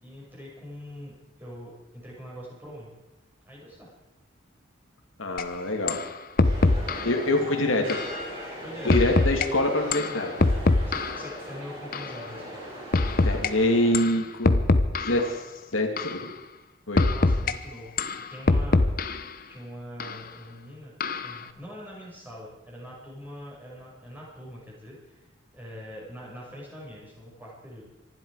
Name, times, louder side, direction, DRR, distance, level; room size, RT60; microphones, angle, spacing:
voice 1, 0.0-2.9 3.4-3.9 6.7-7.0 7.3-7.6 8.6-9.1 10.8-12.7 16.9-18.0 18.3-19.1 19.5-20.9 21.2-25.3 25.5-27.9, equal, 10° right, -5 dB, 5.8 m, -43 dB
voice 2, 5.2-6.0 7.0-8.0 8.8-10.5 13.2-14.7 15.1-15.4 15.7-16.3 16.9-17.1, left 1 dB, 80° left, 3 dB, 2.5 m, -25 dB
sound 1, 5.4-5.5 5.9-6.1 6.4-7.1 7.9-8.1 8.9-9.5 9.9-11.3 11.9-12.1 12.9-13.5 13.9-14.1 14.4-15.3 16.0-16.2 17.0-17.5 18.0-19.3 20.0-20.2 21.0-21.4, left 2 dB, 45° left, 0.8 m, -23 dB
sound 2, 6.4-13.9, equal, 25° right, 6.0 m, -39 dB
25.5 x 12.0 x 4.9 m, 0.98 s
head